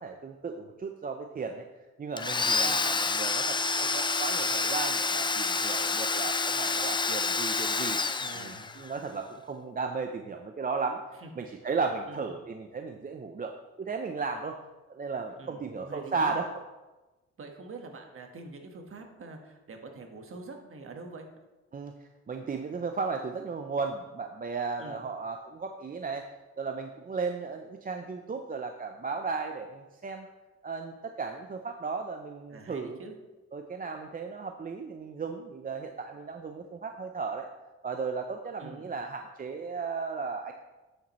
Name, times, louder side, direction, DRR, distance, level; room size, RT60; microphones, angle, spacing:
voice 1, 0.0-1.7 2.0-8.0 8.3-11.1 11.4-13.5 13.8-14.6 14.9-16.5 21.7-21.9 22.3-26.2 26.6-30.3 30.6-33.0 33.5-37.5 37.8-40.5, right 4 dB, 30° right, 4 dB, 0.6 m, -35 dB
Domestic sounds home sounds, 2.2-9.0, left 4 dB, 15° left, 0.4 m, -28 dB
voice 2, 8.2-8.7 11.2-11.5 12.1-12.3 15.4-16.3 17.4-21.3 24.8-25.0 32.5-33.1 38.6-38.9, right 3 dB, 45° right, 3 dB, 1.4 m, -45 dB
8.9 x 7.1 x 3.1 m, 1.1 s
cardioid pair, 90°, 30 cm